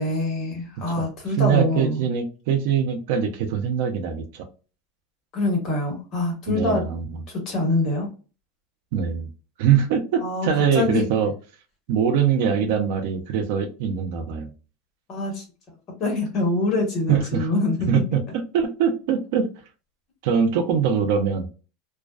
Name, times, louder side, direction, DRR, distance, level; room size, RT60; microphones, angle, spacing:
voice 1, 0.0-2.0 5.3-6.8 7.3-8.1 10.2-11.0 15.1-15.4 16.0-17.9, left 2 dB, 40° left, 0 dB, 1.2 m, -25 dB
voice 2, 1.4-4.5 6.5-7.2 8.9-9.3 9.6-11.3 11.9-14.5 17.1-17.5 17.9-18.2 18.5-19.5 20.2-21.5, right 7 dB, 65° right, 7 dB, 0.5 m, -22 dB
2.4 x 2.2 x 2.3 m, 0.35 s
supercardioid pair, 145°, 0 cm